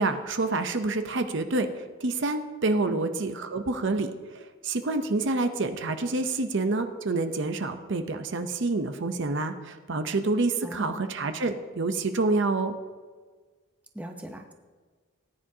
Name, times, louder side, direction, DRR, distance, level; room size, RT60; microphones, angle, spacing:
voice 1, 0.0-1.7 2.0-4.1 4.6-12.8, right 3 dB, 55° right, 8 dB, 0.7 m, -27 dB
voice 2, 10.6-11.1 13.9-14.5, equal, 5° right, 4 dB, 0.8 m, -39 dB
18.5 x 10.0 x 2.8 m, 1.5 s
head